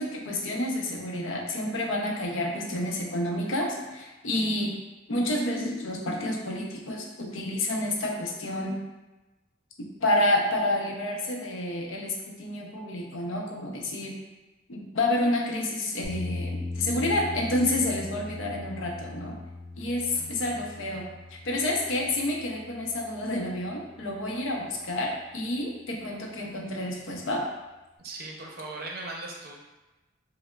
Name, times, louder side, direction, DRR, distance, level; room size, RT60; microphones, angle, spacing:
voice 1, 0.0-4.7 5.1-8.8 10.0-14.2 14.7-19.4 19.8-21.0 21.3-27.5, left 1 dB, 80° left, 0 dB, 0.6 m, -29 dB
sound 1, 16.0-24.1, left 2 dB, 40° left, 0.8 m, -39 dB
voice 2, 20.1-20.6 28.0-29.5, right 2 dB, 50° right, -1 dB, 0.5 m, -39 dB
5.2 x 2.0 x 2.3 m, 1.1 s
head